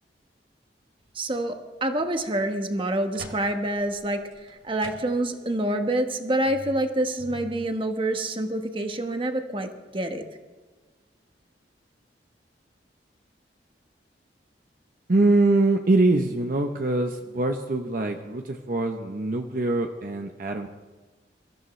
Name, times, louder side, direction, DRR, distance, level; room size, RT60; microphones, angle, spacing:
voice 1, 1.1-10.2, right 1 dB, 30° right, 5 dB, 1.2 m, -27 dB
sound 1, 2.1-2.2 2.7-5.5 5.9-6.0 6.4-7.7, right 2 dB, 75° right, 2.5 m, -45 dB
voice 2, 15.1-20.7, right 2 dB, 50° right, 4 dB, 0.8 m, -23 dB
24.0 x 14.0 x 3.2 m, 1.3 s
head